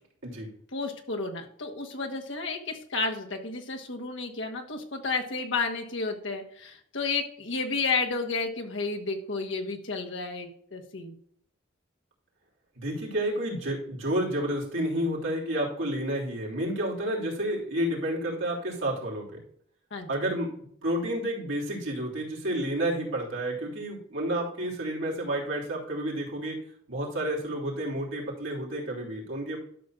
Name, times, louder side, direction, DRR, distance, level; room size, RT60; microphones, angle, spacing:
voice 1, 0.7-11.2 19.9-20.1, left 4 dB, 75° left, 2 dB, 1.4 m, -32 dB
voice 2, 12.8-19.4 20.1-20.5 20.8-26.6 26.9-29.6, right 1 dB, 85° right, -3 dB, 3.2 m, -30 dB
12.0 x 6.4 x 2.5 m, 0.65 s
head